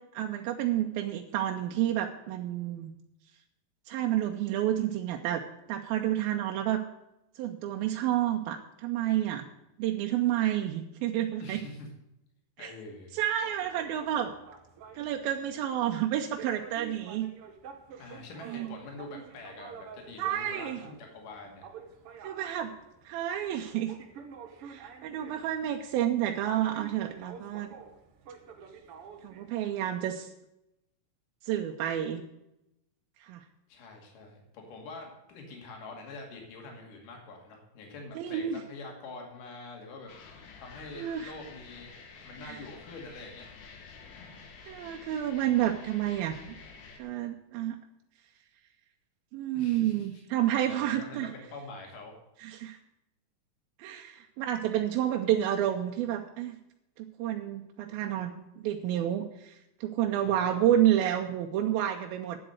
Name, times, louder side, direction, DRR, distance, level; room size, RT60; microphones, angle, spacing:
voice 1, 0.1-2.9 3.9-5.4 5.7-6.8 7.4-9.5 9.8-11.6 12.6-12.7 13.1-14.3 14.9-17.3 18.5-18.7 20.2-20.8 22.2-22.7 23.1-23.9 24.7-27.7 29.2-30.3 31.4-32.2 33.2-33.4 38.2-38.6 41.0-41.3 42.5-42.6 44.7-46.5 47.0-47.8 49.3-51.3 52.4-52.8 53.8-56.6 57.0-62.4, right 11 dB, 90° right, 3 dB, 2.6 m, -30 dB
voice 2, 11.4-11.9 12.6-13.2 18.0-21.6 33.7-40.1 40.6-41.9 42.2-43.5 49.5-50.2 50.5-52.1 60.1-60.7, left 3 dB, 65° left, 1 dB, 3.7 m, -45 dB
sound 1, 13.4-29.5, right 6 dB, 65° right, 1.4 m, -49 dB
sound 2, 40.1-47.0, left 5 dB, 90° left, 3.8 m, -50 dB
10.0 x 7.9 x 7.9 m, 0.86 s
omnidirectional pair, 4.2 m